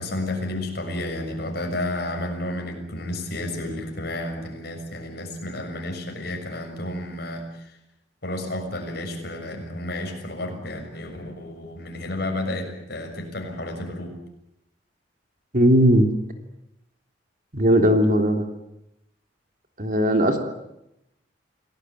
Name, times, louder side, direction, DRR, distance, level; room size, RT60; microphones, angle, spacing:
voice 1, 0.0-7.7 8.2-14.2, left 1 dB, 60° left, 3 dB, 6.8 m, -31 dB
voice 2, 15.5-16.1 17.5-18.4 19.8-20.4, equal, 45° right, 5 dB, 3.2 m, -18 dB
28.5 x 18.5 x 9.3 m, 0.85 s
head